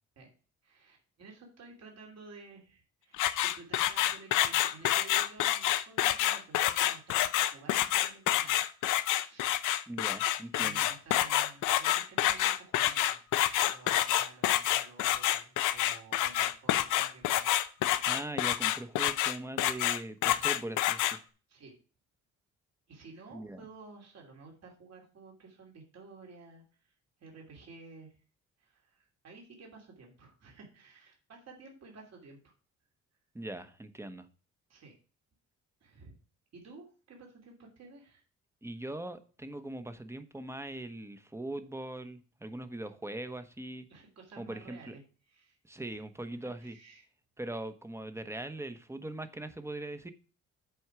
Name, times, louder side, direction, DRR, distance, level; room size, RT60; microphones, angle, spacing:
voice 1, 0.6-9.5 10.5-13.2 13.5-18.2 21.5-21.8 22.9-26.9 27.2-28.2 28.6-32.5 34.7-35.0 35.8-36.2 36.5-38.2 43.9-45.0 45.3-45.6 46.6-47.0, right 4 dB, 60° right, 0 dB, 2.8 m, -53 dB
sound 1, 3.1-21.2, left 13 dB, 85° left, 0.6 m, -28 dB
voice 2, 9.9-10.9 18.0-21.2 23.3-23.6 33.3-34.3 38.6-43.9 44.4-44.9 45.6-46.8 47.4-50.1, right 1 dB, 10° right, 10 dB, 1.0 m, -41 dB
7.9 x 4.5 x 5.9 m, 0.37 s
cardioid pair, 90°, 30 cm